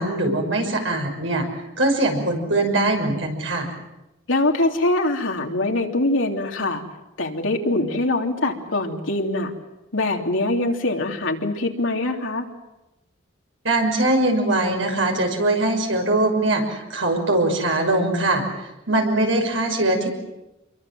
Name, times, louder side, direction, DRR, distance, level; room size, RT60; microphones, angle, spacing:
voice 1, 0.0-1.5 1.8-3.7 13.6-18.4 18.9-20.1, right 2 dB, 75° right, 2 dB, 6.2 m, -21 dB
voice 2, 4.3-6.8 7.2-9.5 9.9-12.4, left 2 dB, 80° left, 2 dB, 3.3 m, -23 dB
27.5 x 23.0 x 7.8 m, 0.96 s
head